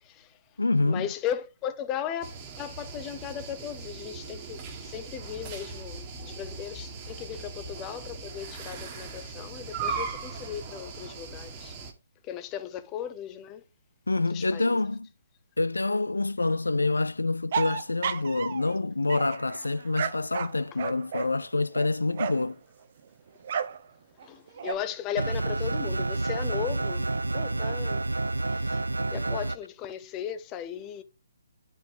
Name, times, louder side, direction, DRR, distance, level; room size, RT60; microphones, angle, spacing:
voice 1, 0.0-0.4 0.8-11.8 12.2-13.6 14.1-14.8 24.2-28.1 28.5-31.0, left 10 dB, 20° left, 0.8 m, -37 dB
voice 2, 0.6-1.1 14.1-15.1 15.6-22.6, left 3 dB, 80° left, 0.4 m, -27 dB
sound 1, 2.2-11.9, right 5 dB, 25° right, 1.6 m, -39 dB
sound 2, 17.5-18.7 19.1-22.5 23.4-23.8 24.2-24.7, right 7 dB, 45° right, 0.8 m, -33 dB
sound 3, 25.2-29.6, right 2 dB, 85° right, 0.5 m, -29 dB
9.4 x 5.4 x 3.9 m
figure-of-eight pair, 140°, 0 cm